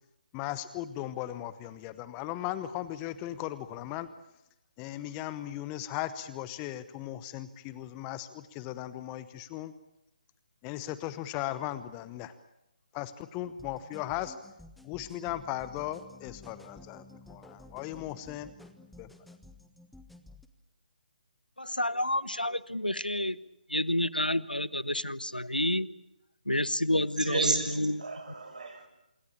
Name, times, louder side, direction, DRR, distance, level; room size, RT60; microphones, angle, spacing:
voice 1, 0.3-4.1 4.8-9.7 10.6-12.3 12.9-14.3 14.8-17.0 17.3-18.5 19.0-19.1, left 13 dB, 15° left, 0.9 m, -37 dB
sound 1, 13.4-20.5, left 2 dB, ahead, 1.2 m, -52 dB
voice 2, 21.6-23.4 23.7-25.9 26.5-28.0, left 1 dB, 90° left, 1.1 m, -29 dB
voice 3, 27.2-28.9, right 3 dB, 55° right, 7.2 m, -31 dB
26.5 x 22.5 x 8.7 m
figure-of-eight pair, 145°, 5 cm